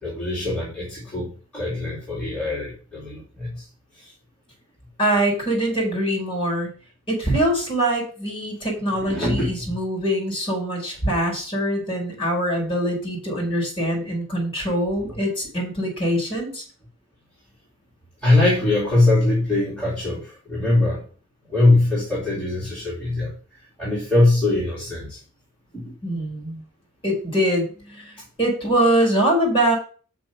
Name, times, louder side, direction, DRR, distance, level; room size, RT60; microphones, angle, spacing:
voice 1, 0.0-3.6 4.0-4.1 9.0-9.7 18.2-21.0 21.5-23.3 23.8-25.2 25.7-25.9, left 2 dB, 5° left, -9 dB, 2.8 m, -22 dB
voice 2, 5.0-6.7 7.1-16.6 26.0-26.6 27.0-29.8, right 1 dB, 25° left, -1 dB, 4.7 m, -23 dB
6.2 x 5.4 x 6.7 m, 0.40 s
head